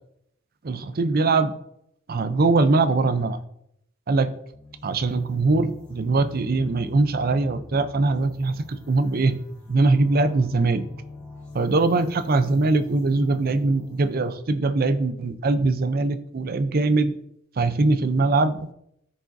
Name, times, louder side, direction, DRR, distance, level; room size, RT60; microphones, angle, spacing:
voice 1, 0.6-1.5 2.1-3.4 4.1-4.4 4.8-9.4 9.7-10.9 11.5-17.1 17.6-18.7, right 3 dB, 45° right, 12 dB, 0.5 m, -22 dB
sound 1, 4.5-14.4, left 2 dB, 5° left, 2.0 m, -43 dB
14.0 x 5.0 x 2.6 m, 0.76 s
head